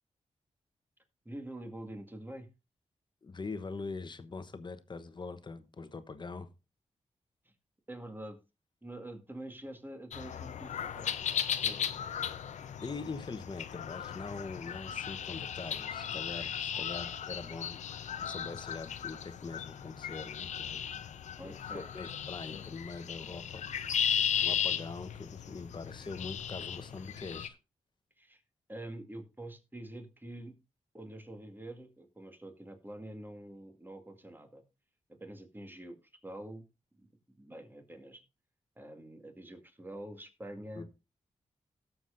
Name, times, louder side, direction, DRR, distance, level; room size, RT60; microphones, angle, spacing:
voice 1, 1.3-2.5 7.4-7.5 7.9-8.4 8.8-11.8 21.4-21.9 28.2-28.4 28.7-30.5 30.9-34.6 35.1-36.7 37.0-37.1 37.4-38.2 38.8-40.9, right 1 dB, 15° right, 2.0 m, -46 dB
voice 2, 3.2-6.5 12.8-20.9 21.4-23.6 23.9-27.6 40.8-40.9, left 4 dB, 40° left, 1.1 m, -43 dB
sound 1, 10.1-27.5, left 8 dB, 85° left, 0.7 m, -36 dB
17.0 x 7.0 x 2.6 m
cardioid pair, 70°, 12 cm